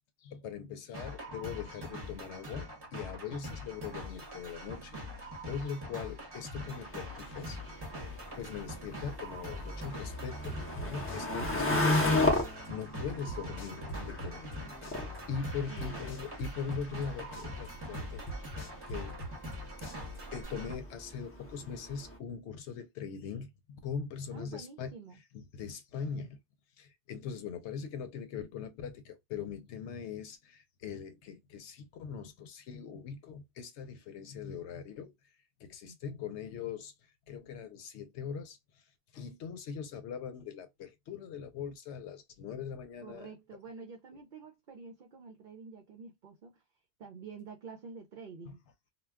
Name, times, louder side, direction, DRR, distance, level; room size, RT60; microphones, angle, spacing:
voice 1, 0.2-5.0 5.5-7.6 8.4-18.2 18.9-19.2 20.3-24.9 25.3-26.4 26.8-35.1 35.6-36.9 37.3-38.6 39.1-43.3 48.5-48.6, left 7 dB, 90° left, 0.9 m, -41 dB
sound 1, 0.9-20.7, left 1 dB, 25° right, 0.8 m, -43 dB
sound 2, 6.6-22.2, left 2 dB, 15° left, 0.5 m, -36 dB
sound 3, 10.4-12.1 12.3-14.6 14.8-17.1 17.3-19.6 19.8-20.4, right 2 dB, 55° left, 1.0 m, -42 dB
voice 2, 24.3-25.2 35.8-36.0 43.0-46.6 47.0-48.6, right 5 dB, 55° right, 0.6 m, -48 dB
2.2 x 2.2 x 3.4 m
omnidirectional pair, 1.1 m